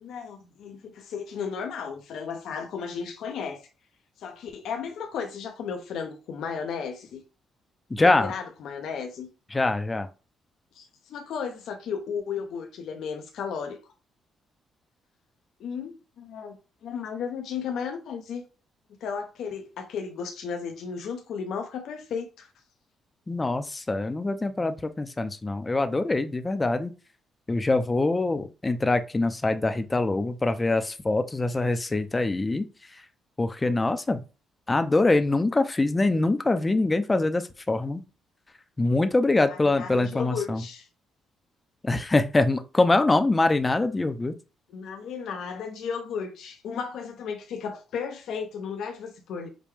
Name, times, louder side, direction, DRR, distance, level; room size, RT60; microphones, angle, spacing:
voice 1, 0.0-3.6 4.2-7.2 8.0-9.3 10.7-13.8 15.6-16.6 16.8-18.4 19.0-22.5 39.5-40.9 44.7-49.5, left 6 dB, 75° left, 0.6 m, -34 dB
voice 2, 7.9-8.3 9.5-10.1 23.3-26.9 27.5-32.6 33.4-34.2 34.7-38.0 38.8-40.6 41.8-44.3, left 2 dB, 20° left, 0.5 m, -24 dB
5.1 x 2.2 x 3.2 m
cardioid pair, 90°, 0 cm